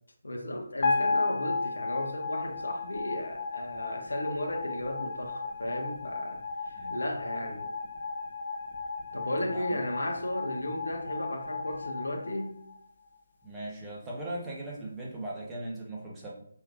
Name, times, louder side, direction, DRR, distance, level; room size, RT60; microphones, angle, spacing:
voice 1, 0.2-7.7 9.1-12.6, left 1 dB, 75° left, 2 dB, 0.9 m, -35 dB
sound 1, 0.8-13.1, left 3 dB, 45° left, 0.9 m, -34 dB
voice 2, 13.4-16.3, right 1 dB, 10° right, -5 dB, 1.1 m, -38 dB
5.4 x 3.0 x 2.5 m, 0.63 s
figure-of-eight pair, 150°, 0 cm